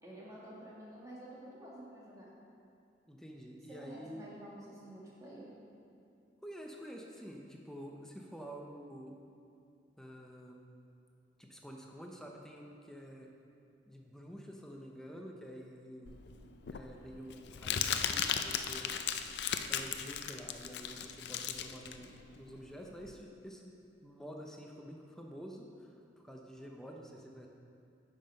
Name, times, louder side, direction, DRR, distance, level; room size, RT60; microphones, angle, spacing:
voice 1, 0.0-2.3 3.7-5.5, right 1 dB, 20° right, -6 dB, 1.8 m, -50 dB
voice 2, 3.1-4.3 6.4-9.2 10.0-10.6 11.4-13.3 13.9-16.2 16.7-19.0 19.7-25.9 26.2-27.5, equal, 5° left, 0 dB, 0.5 m, -49 dB
Crumpling crinkling, 16.1-23.1, left 8 dB, 65° left, 0.4 m, -36 dB
8.9 x 5.7 x 5.3 m, 2.5 s
head